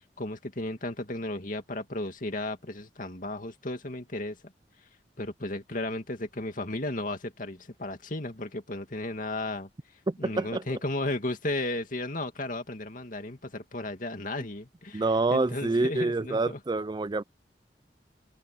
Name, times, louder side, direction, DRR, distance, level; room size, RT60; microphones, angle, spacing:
voice 1, 0.2-4.4 5.2-9.7 10.2-15.0 15.3-16.6, left 2 dB, 50° left, 2.5 m, -34 dB
voice 2, 10.1-10.6 14.9-17.2, right 3 dB, 25° right, 0.4 m, -27 dB
head